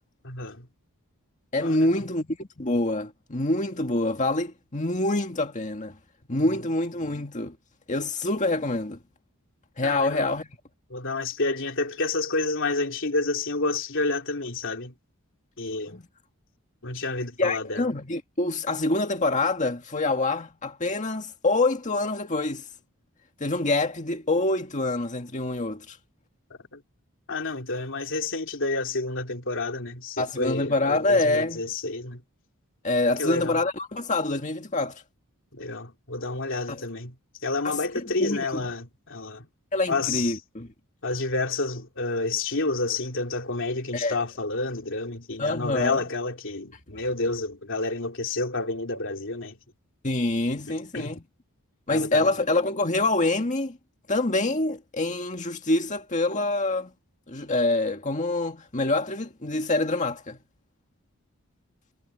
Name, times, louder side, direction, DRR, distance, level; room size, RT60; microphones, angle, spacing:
voice 1, 0.2-0.7 1.6-1.8 9.8-10.3 10.9-14.9 15.6-16.0 16.8-17.8 26.7-26.8 27.3-32.2 33.2-33.6 35.5-37.1 37.4-39.5 39.9-40.4 41.0-49.6 50.9-51.1 51.9-52.3, left 3 dB, 60° left, 3.2 m, -29 dB
voice 2, 1.5-6.0 6.3-7.6 7.9-9.0 9.8-10.5 15.9-16.0 17.4-22.6 23.4-26.0 30.2-31.6 32.8-35.0 36.7-36.8 37.6-38.7 39.7-40.7 43.9-44.2 45.4-46.0 50.0-51.2 51.9-53.8 54.1-56.9 57.3-60.4, left 2 dB, 35° left, 2.0 m, -26 dB
head